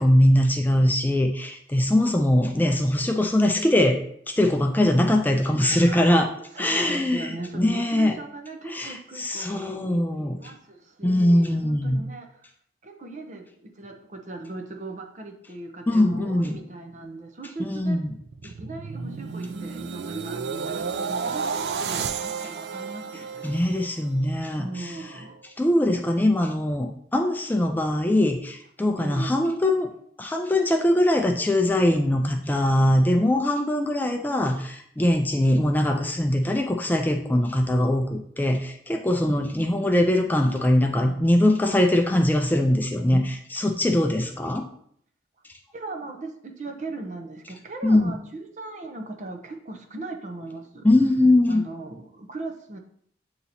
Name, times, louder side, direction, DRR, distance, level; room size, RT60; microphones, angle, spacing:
voice 1, 0.0-4.0 4.3-6.3 6.6-8.2 8.7-10.3 11.0-12.0 15.9-16.6 17.6-18.2 23.4-25.0 25.6-29.9 30.2-43.2 43.5-44.7 47.8-48.1 50.8-51.6, left 1 dB, 10° left, 3 dB, 0.4 m, -22 dB
voice 2, 5.6-12.5 12.8-18.1 18.4-23.5 24.6-25.4 29.0-29.4 33.1-33.3 43.1-43.3 45.7-50.9 51.5-52.8, right 2 dB, 45° right, 4 dB, 0.7 m, -38 dB
sound 1, 18.1-24.3 24.7-25.0, right 5 dB, 70° right, 0.4 m, -32 dB
7.9 x 2.9 x 4.1 m, 0.66 s
head